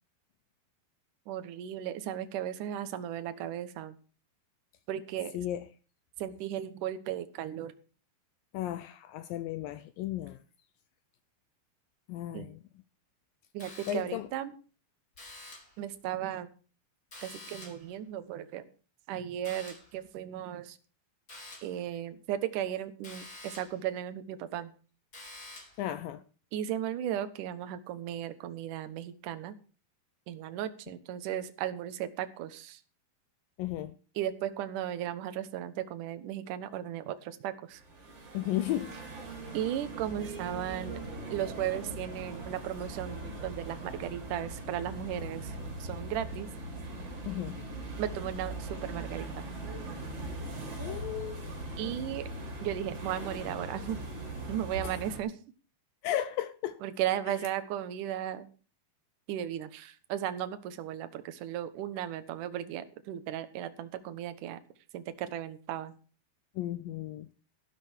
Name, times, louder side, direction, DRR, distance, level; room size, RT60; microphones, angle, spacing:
voice 1, 1.3-4.0 4.9-5.4 6.2-7.7 12.3-12.5 13.5-14.5 15.8-16.5 17.2-18.7 19.1-20.8 21.6-24.7 26.5-29.6 30.3-32.8 34.2-37.8 39.5-41.0 41.3-46.5 46.8-46.9 48.0-49.4 51.8-52.3 52.6-54.0 54.5-55.3 56.8-58.5 59.3-64.6 64.9-65.9, right 11 dB, 65° right, 2.4 m, -36 dB
voice 2, 5.3-5.7 8.5-10.4 12.1-12.6 13.9-14.3 25.8-26.2 33.6-34.0 38.3-39.0 47.3-47.6 50.8-51.5 54.8-54.9 56.0-56.8 66.6-67.3, left 13 dB, 75° left, 2.2 m, -34 dB
sound 1, 13.6-14.3 15.1-15.8 17.1-17.9 19.4-20.0 21.3-21.8 23.0-23.8 25.1-25.9, left 2 dB, 25° left, 4.5 m, -48 dB
sound 2, 37.8-55.2, right 2 dB, 40° right, 5.7 m, -40 dB
13.0 x 12.0 x 4.4 m
omnidirectional pair, 4.5 m